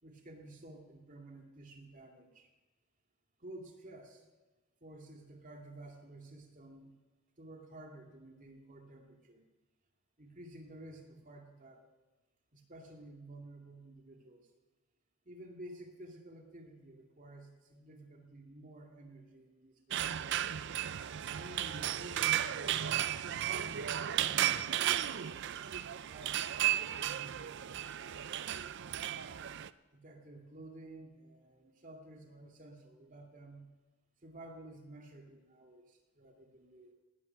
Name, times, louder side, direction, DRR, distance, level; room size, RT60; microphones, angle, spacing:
voice 1, 0.0-2.5 3.4-4.2 4.8-7.0 7.4-9.4 10.2-11.8 12.5-14.5 15.3-20.3 21.4-22.8 23.3-25.5 26.0-26.4 26.7-27.6 29.9-33.7 34.2-36.9, right 1 dB, 35° right, 2 dB, 2.4 m, -52 dB
sound 1, 19.9-29.7, right 11 dB, 55° right, 0.4 m, -34 dB
19.0 x 12.5 x 5.7 m, 1.2 s
head